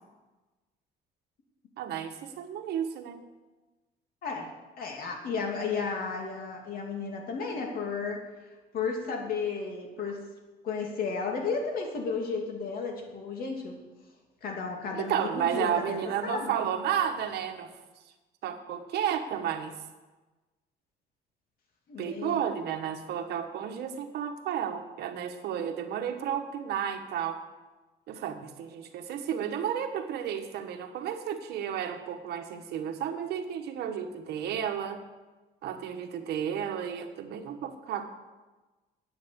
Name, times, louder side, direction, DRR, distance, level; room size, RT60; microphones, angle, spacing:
voice 1, 1.8-3.2 14.9-17.7 18.4-19.7 22.0-27.4 28.1-35.0 35.6-38.1, right 9 dB, 75° right, 6 dB, 1.4 m, -32 dB
voice 2, 4.8-8.2 8.7-10.2 10.6-13.8 14.4-16.5 21.9-22.4, left 5 dB, 60° left, 1 dB, 2.6 m, -33 dB
9.5 x 9.0 x 6.9 m, 1.2 s
cardioid pair, 110°, 17 cm